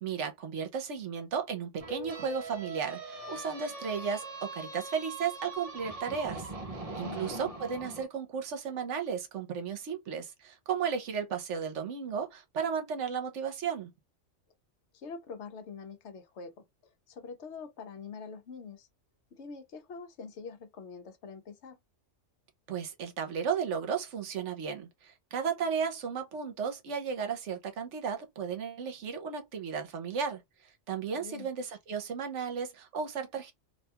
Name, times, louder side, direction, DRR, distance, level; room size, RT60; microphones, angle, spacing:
voice 1, 0.0-6.5 7.0-13.9 22.7-30.4 30.9-33.5, right 6 dB, 75° right, 1.0 m, -34 dB
sound 1, 1.8-8.0, right 3 dB, 40° right, 0.6 m, -41 dB
voice 2, 7.0-7.5 14.9-18.9 19.3-21.8 31.1-31.5, left 5 dB, 70° left, 0.9 m, -45 dB
2.6 x 2.2 x 2.8 m
omnidirectional pair, 1.3 m